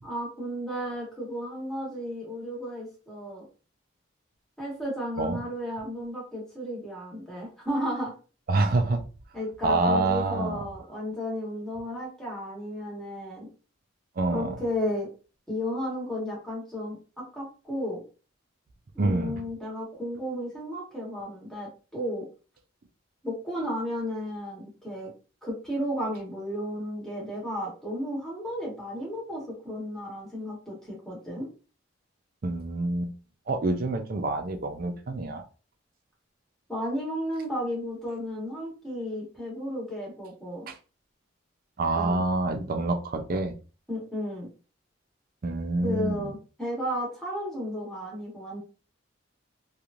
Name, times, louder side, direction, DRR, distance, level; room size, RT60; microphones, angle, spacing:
voice 1, 0.0-3.4 4.6-8.1 9.3-13.5 14.3-15.1 15.5-18.0 18.9-22.3 23.2-25.1 25.4-31.5 36.7-40.7 41.9-42.2 43.9-44.5 45.8-48.6, equal, ahead, -5 dB, 1.1 m, -33 dB
voice 2, 8.5-9.0 9.6-10.6 14.2-14.5 19.0-19.4 32.4-33.1 33.5-35.4 40.7-40.8 41.8-43.5 45.4-46.3, right 2 dB, 45° right, 6 dB, 0.4 m, -27 dB
3.0 x 2.4 x 2.5 m, 0.35 s
head